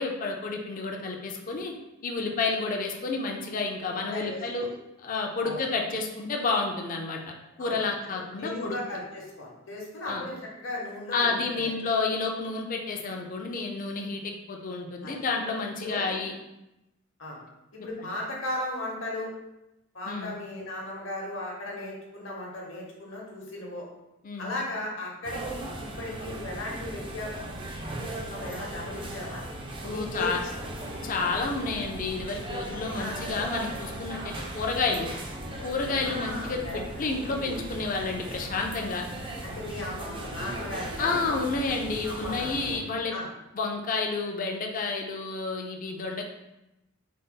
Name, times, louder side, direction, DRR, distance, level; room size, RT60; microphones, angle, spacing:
voice 1, 0.0-1.7 2.0-4.7 5.0-8.8 10.1-10.3 11.1-16.3 20.1-20.3 24.2-24.5 29.8-30.4 31.0-35.1 35.6-39.1 41.0-43.1 43.5-46.3, left 4 dB, 45° left, 2 dB, 0.5 m, -30 dB
voice 2, 4.1-4.7 5.4-5.6 7.6-7.8 8.1-11.7 15.0-15.1 15.8-16.3 17.2-17.4 17.7-19.3 19.9-23.9 24.4-27.5 27.9-29.4 29.9-30.9 32.9-33.2 36.0-36.8 39.4-41.1 42.0-42.6 43.1-43.3, left 1 dB, 65° left, -2 dB, 1.0 m, -36 dB
sound 1, 25.2-42.8, right 1 dB, 25° right, 0.4 m, -38 dB
3.9 x 2.0 x 3.7 m, 0.93 s
head